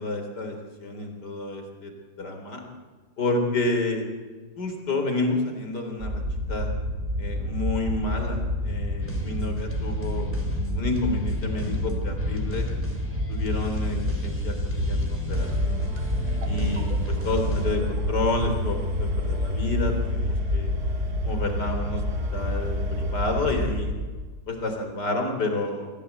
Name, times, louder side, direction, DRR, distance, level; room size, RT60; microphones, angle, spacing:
voice 1, 0.0-1.9 2.2-2.6 3.2-4.0 4.6-6.2 6.5-6.7 7.2-10.3 10.7-12.7 13.3-15.9 16.4-20.7 21.2-22.0 22.3-23.9 24.5-25.9, left 2 dB, 70° left, 4 dB, 4.3 m, -29 dB
sound 1, 6.0-24.1, left 1 dB, 40° right, 3.5 m, -28 dB
sound 2, 9.0-17.7, equal, 5° left, 3.4 m, -37 dB
sound 3, 15.3-23.6, left 1 dB, 60° right, 2.5 m, -33 dB
26.0 x 17.0 x 8.4 m, 1.4 s
omnidirectional pair, 1.9 m